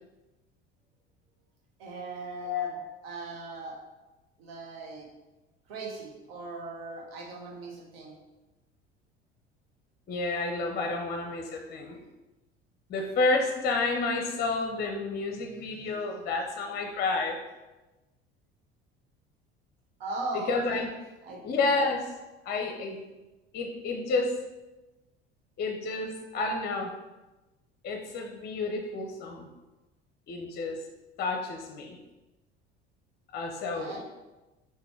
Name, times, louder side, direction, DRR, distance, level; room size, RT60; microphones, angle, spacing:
voice 1, 1.8-2.8 3.0-3.8 4.4-5.1 5.7-8.2 20.0-20.8 21.2-21.4 33.7-34.0, right 2 dB, 65° right, -2 dB, 1.1 m, -39 dB
voice 2, 2.4-2.8 10.1-12.0 12.9-17.4 20.5-20.9 21.4-22.1 22.4-23.0 23.5-24.3 25.6-26.9 27.8-29.5 30.3-30.8 31.2-32.0 33.3-34.0, left 3 dB, 30° left, 3 dB, 0.6 m, -30 dB
5.9 x 2.6 x 3.2 m, 1.1 s
figure-of-eight pair, 60°, 32 cm